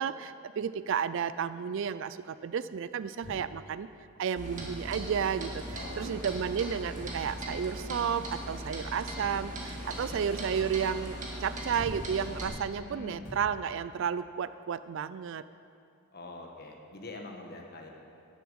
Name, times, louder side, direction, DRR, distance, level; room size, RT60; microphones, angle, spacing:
voice 1, 0.0-3.9 4.2-15.4, right 7 dB, 60° right, 15 dB, 0.3 m, -32 dB
sound 1, 3.2-3.7 4.5-4.9 5.3-5.4 5.7-6.0 6.3-6.6 6.9-7.3 8.0-8.6 9.2-9.4 10.5-10.9 11.5-11.6 11.8-12.8 13.2-13.6, equal, 65° left, 3.1 m, -46 dB
Clock, 4.4-12.5, right 1 dB, 35° right, 1.8 m, -39 dB
Motorcycle / Engine, 5.0-12.0, equal, 10° left, 2.1 m, -53 dB
voice 2, 5.7-6.2 12.8-13.3 16.1-17.9, left 2 dB, 45° left, 2 dB, 1.3 m, -44 dB
11.0 x 7.0 x 7.8 m, 2.4 s
head